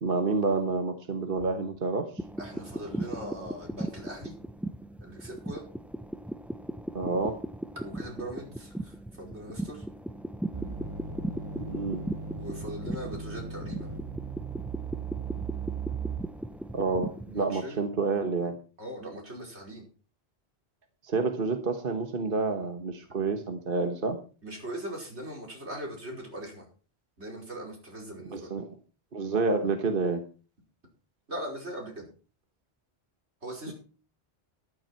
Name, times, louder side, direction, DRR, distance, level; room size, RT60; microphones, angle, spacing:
voice 1, 0.0-2.1 6.9-7.4 11.7-12.0 16.7-18.6 21.0-24.2 28.3-28.7 29.1-30.2, right 3 dB, 55° right, 6 dB, 1.5 m, -28 dB
sound 1, 2.2-17.4, right 1 dB, ahead, 0.5 m, -38 dB
voice 2, 2.4-4.3 5.0-5.6 7.8-9.9 12.4-13.9 17.4-17.9 18.8-19.9 24.4-26.7 27.2-28.6 31.3-32.1 33.4-33.7, right 1 dB, 85° right, 0 dB, 5.4 m, -40 dB
sound 2, 10.5-16.5, right 6 dB, 25° right, 1.4 m, -37 dB
12.5 x 12.5 x 4.5 m, 0.36 s
omnidirectional pair, 1.1 m